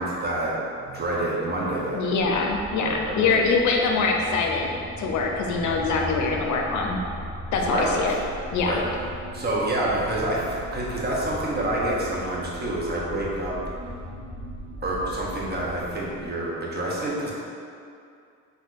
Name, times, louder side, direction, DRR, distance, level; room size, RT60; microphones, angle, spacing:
voice 1, 0.0-2.2 2.7-3.4 7.5-8.2 8.6-8.8 9.3-13.6 14.8-17.3, right 1 dB, 35° right, -5 dB, 0.8 m, -28 dB
voice 2, 1.9-7.0 7.5-8.2 8.5-8.8, left 4 dB, 70° left, 1 dB, 0.5 m, -24 dB
sound 1, 2.2-16.3, equal, 60° right, 0.9 m, -38 dB
4.3 x 2.5 x 2.5 m, 2.4 s
cardioid pair, 90°, 30 cm